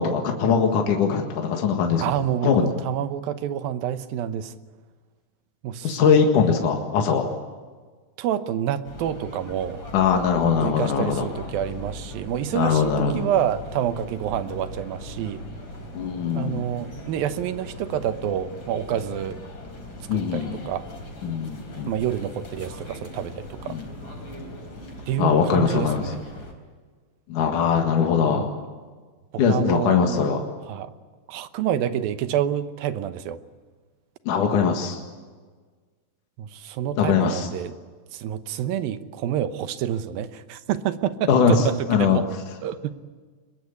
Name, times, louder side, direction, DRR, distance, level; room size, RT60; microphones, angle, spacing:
voice 1, 0.0-2.0 2.4-2.7 5.8-7.3 9.9-11.3 12.5-13.3 15.9-16.6 20.1-20.6 21.2-21.9 23.7-23.9 25.2-26.0 27.3-28.5 29.4-30.4 34.3-35.0 37.0-37.5 41.3-41.5 41.9-42.2, left 6 dB, 65° left, 3 dB, 3.3 m, -21 dB
voice 2, 2.0-4.5 5.6-6.0 8.2-9.8 10.6-15.4 16.3-19.4 20.1-20.9 21.9-23.8 25.1-26.2 28.2-28.5 29.3-30.2 30.7-30.9 31.3-33.4 36.4-37.8 38.1-42.3 42.6-42.9, right 10 dB, 90° right, 11 dB, 2.9 m, -28 dB
sound 1, 8.8-26.5, left 1 dB, 35° left, 4.5 m, -39 dB
24.0 x 21.5 x 8.6 m, 1.5 s
omnidirectional pair, 4.0 m